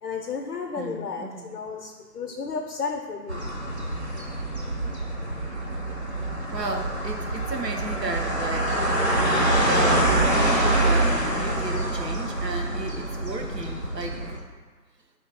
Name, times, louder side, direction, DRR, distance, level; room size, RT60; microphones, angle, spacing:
voice 1, 0.0-3.5, left 5 dB, 65° left, 2 dB, 0.5 m, -33 dB
voice 2, 0.8-1.5 6.5-8.8 9.2-9.4 9.6-14.4, right 2 dB, 75° right, 3 dB, 0.8 m, -34 dB
sound 1, 3.3-14.4, right 1 dB, 45° right, 0.5 m, -25 dB
4.7 x 3.1 x 3.4 m, 1.4 s
figure-of-eight pair, 160°, 50 cm